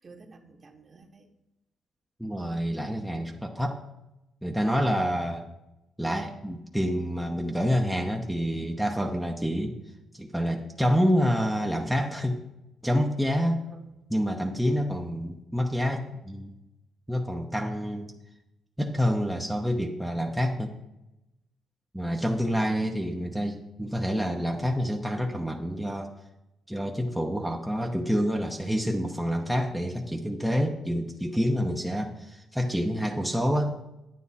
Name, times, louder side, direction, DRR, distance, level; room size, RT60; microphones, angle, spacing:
voice 1, 0.0-1.3 13.7-13.9 14.6-14.8 22.0-22.3 32.0-32.2, right 3 dB, 35° right, 3 dB, 1.4 m, -52 dB
voice 2, 2.2-3.8 4.4-5.4 6.0-9.7 10.1-12.4 12.8-13.6 14.1-16.5 17.1-18.1 18.8-20.7 21.9-26.1 26.7-33.8, equal, 5° right, 1 dB, 0.9 m, -27 dB
9.4 x 9.3 x 4.2 m, 0.93 s
cardioid pair, 90°, 0 cm